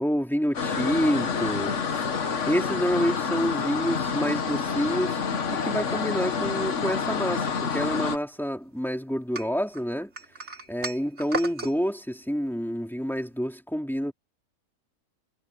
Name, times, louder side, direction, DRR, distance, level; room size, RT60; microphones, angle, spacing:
voice 1, 0.0-2.1 2.5-5.2 5.5-10.1 10.7-14.1, equal, ahead, 3.2 m, -28 dB
sound 1, 0.5-8.2, left 5 dB, 55° left, 1.6 m, -28 dB
sound 2, 9.3-11.7, right 2 dB, 50° right, 3.4 m, -35 dB
omnidirectional pair, 1.6 m